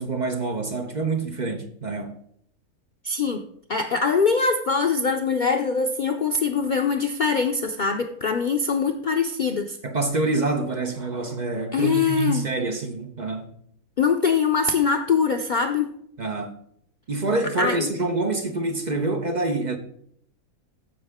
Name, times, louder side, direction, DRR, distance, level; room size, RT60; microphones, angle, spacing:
voice 1, 0.0-2.1 9.8-13.5 16.2-16.6 17.1-19.8, right 3 dB, 40° right, 0.7 m, -26 dB
voice 2, 3.0-3.4 3.7-9.8 11.7-12.5 14.0-15.9 17.6-17.9, left 5 dB, 85° left, 0.4 m, -23 dB
14.5 x 5.5 x 3.5 m
omnidirectional pair, 1.6 m